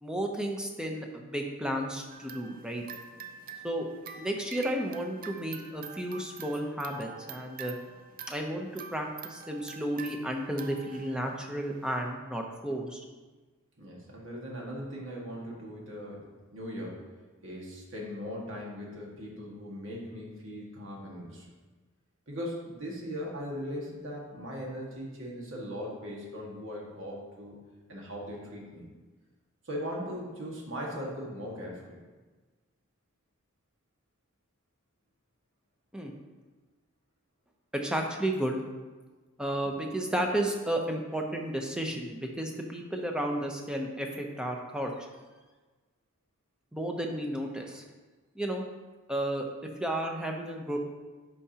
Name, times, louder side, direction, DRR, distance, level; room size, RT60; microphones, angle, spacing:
voice 1, 0.0-2.8 3.6-3.9 4.1-7.8 8.3-13.0 35.9-36.1 37.7-38.6 39.4-45.1 46.7-47.8 48.4-48.6 49.1-49.4 49.8-50.8, right 1 dB, 5° right, 1 dB, 0.7 m, -32 dB
sound 1, 2.1-12.1, right 6 dB, 40° right, 0.5 m, -46 dB
voice 2, 13.8-16.2 16.5-17.0 17.4-21.5 22.3-27.6 27.9-28.8 29.6-32.0, equal, 65° right, -3 dB, 1.8 m, -39 dB
11.0 x 4.8 x 2.9 m, 1.3 s
head